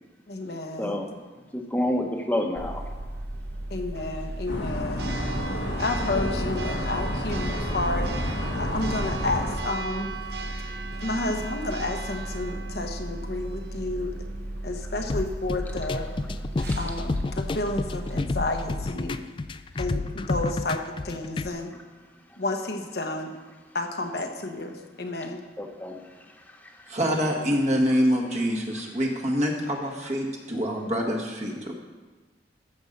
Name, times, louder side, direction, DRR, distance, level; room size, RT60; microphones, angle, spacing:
voice 1, 0.3-1.0 3.7-5.1 5.8-8.1 8.5-10.1 11.0-14.2 14.6-16.1 16.8-19.2 19.8-21.7 22.4-23.3 23.7-25.4, left 2 dB, 65° left, 3 dB, 1.1 m, -31 dB
voice 2, 0.8-1.1 1.5-2.8 11.2-11.3 16.7-16.8 25.6-27.0, left 1 dB, 10° left, 2 dB, 1.1 m, -30 dB
Church bell, 2.6-18.9, right 2 dB, 65° right, 0.9 m, -35 dB
sound 1, 4.5-9.6, left 1 dB, 85° left, 1.7 m, -30 dB
sound 2, 15.1-21.5, left 3 dB, 30° left, 0.3 m, -30 dB
voice 3, 26.9-31.7, equal, 40° right, 0 dB, 1.6 m, -25 dB
14.0 x 5.4 x 6.6 m, 1.3 s
head